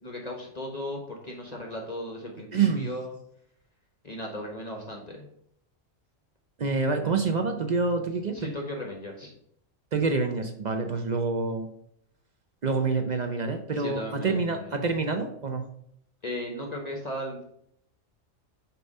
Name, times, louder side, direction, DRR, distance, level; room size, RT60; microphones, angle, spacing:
voice 1, 0.0-3.1 4.0-5.3 8.3-9.3 13.8-14.7 16.2-17.4, left 1 dB, 35° left, 0 dB, 1.1 m, -36 dB
voice 2, 2.5-2.9 6.6-8.5 9.9-11.7 12.6-15.7, right 4 dB, 55° right, 5 dB, 0.5 m, -27 dB
6.7 x 3.0 x 5.3 m, 0.70 s
omnidirectional pair, 1.4 m